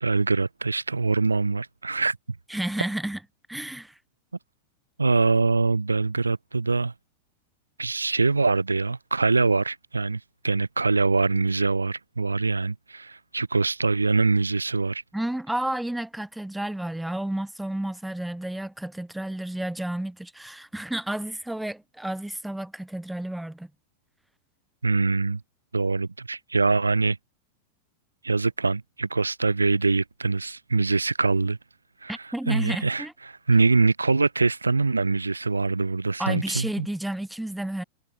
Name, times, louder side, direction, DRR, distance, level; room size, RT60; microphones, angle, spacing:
voice 1, 0.0-2.2 5.0-6.9 7.8-15.0 24.8-25.4 25.7-27.2 28.2-31.6 32.0-36.9, right 3 dB, 80° right, 1.8 m, -24 dB
voice 2, 2.5-3.2 3.5-4.0 15.1-23.7 32.1-33.1 36.2-37.8, right 1 dB, 5° right, 1.1 m, -31 dB
figure-of-eight pair, 90°, 0 cm